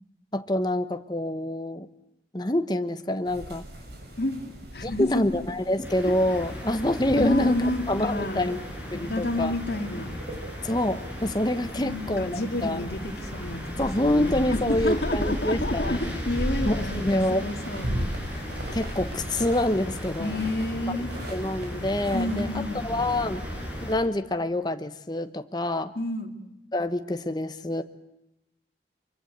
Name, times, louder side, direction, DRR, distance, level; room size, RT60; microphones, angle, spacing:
voice 1, 0.3-1.9 2.3-3.7 4.8-7.6 7.9-8.6 8.9-9.5 10.6-12.8 13.8-16.2 16.6-17.4 18.7-20.4 20.9-21.0 21.3-23.4 23.8-25.9 26.7-27.8, left 1 dB, 25° left, 9 dB, 1.1 m, -26 dB
sound 1, 3.3-22.5, equal, 75° right, 6.2 m, -40 dB
voice 2, 4.7-5.3 7.2-8.5 8.9-10.1 11.7-18.5 20.2-21.1 22.1-22.9 26.0-26.4, left 1 dB, 65° left, 5 dB, 2.6 m, -30 dB
sound 2, 5.8-24.0, equal, 10° right, 7.0 m, -35 dB
24.5 x 24.0 x 8.1 m, 0.89 s
head